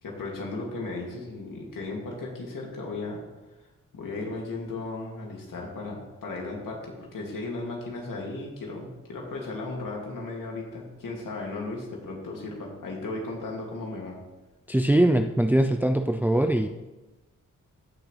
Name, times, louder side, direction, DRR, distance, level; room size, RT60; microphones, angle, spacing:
voice 1, 0.0-3.2 3.9-14.2, left 2 dB, 75° left, -1 dB, 2.6 m, -35 dB
voice 2, 14.7-16.7, right 1 dB, 5° right, 5 dB, 0.5 m, -22 dB
15.5 x 6.1 x 3.4 m, 1.1 s
cardioid pair, 70°, 33 cm